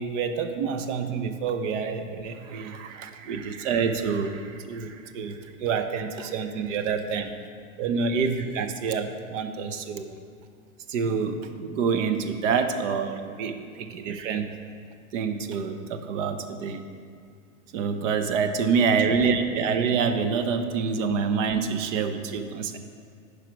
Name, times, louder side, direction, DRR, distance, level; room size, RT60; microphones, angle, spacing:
voice 1, 0.0-7.3 7.8-10.1 10.9-14.5 15.1-16.8 17.7-22.8, right 5 dB, 60° right, 8 dB, 0.8 m, -27 dB
9.1 x 4.9 x 5.1 m, 2.3 s
hypercardioid pair, 130°, 42 cm